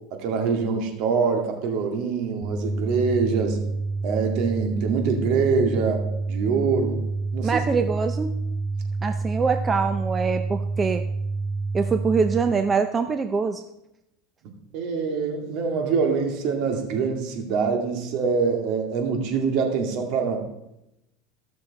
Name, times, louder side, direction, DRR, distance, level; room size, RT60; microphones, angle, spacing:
voice 1, 0.2-3.6 4.0-6.0 6.3-7.0 7.3-7.6 14.7-20.4, right 5 dB, 65° right, 3 dB, 2.2 m, -24 dB
sound 1, 2.4-12.4, right 3 dB, 5° left, 2.0 m, -28 dB
voice 2, 7.4-8.4 9.0-11.0 11.7-13.6, right 5 dB, 25° right, 8 dB, 0.6 m, -24 dB
15.0 x 6.5 x 4.2 m, 0.87 s
supercardioid pair, 115°, 0 cm